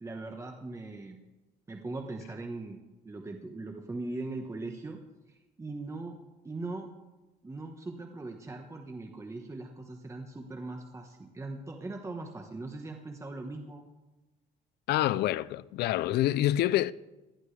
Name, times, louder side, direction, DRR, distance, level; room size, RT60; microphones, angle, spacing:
voice 1, 0.0-1.2 1.7-2.8 3.0-5.0 5.3-6.2 6.4-6.9 7.4-13.8, right 2 dB, 15° right, 1.2 m, -40 dB
voice 2, 14.9-16.9, left 14 dB, 75° left, 0.5 m, -27 dB
19.5 x 13.5 x 3.4 m
cardioid pair, 110°, 17 cm